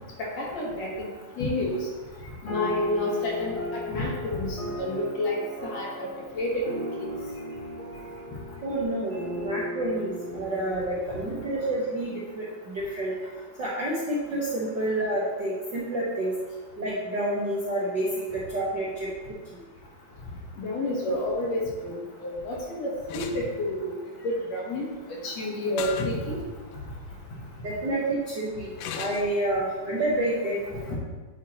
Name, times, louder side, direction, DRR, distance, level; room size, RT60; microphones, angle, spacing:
voice 1, 0.2-1.1 1.4-1.8 2.4-5.4 5.6-6.1 6.4-6.6 7.0-7.1 20.6-22.0 22.2-23.9 24.5-24.9 25.2-26.4 30.9-31.0, left 1 dB, 60° left, -2 dB, 2.3 m, -29 dB
sound 1, 2.5-12.2, left 1 dB, 25° left, 2.5 m, -36 dB
voice 2, 8.6-13.1 13.6-16.3 16.8-19.1 19.5-19.6 27.6-30.9, right 1 dB, 55° right, -7 dB, 1.3 m, -29 dB
sound 2, 23.1-23.4 25.8-26.1 26.7-26.8 28.8-29.3, left 8 dB, 85° left, 2.2 m, -35 dB
9.4 x 7.9 x 3.0 m, 1.3 s
omnidirectional pair, 3.8 m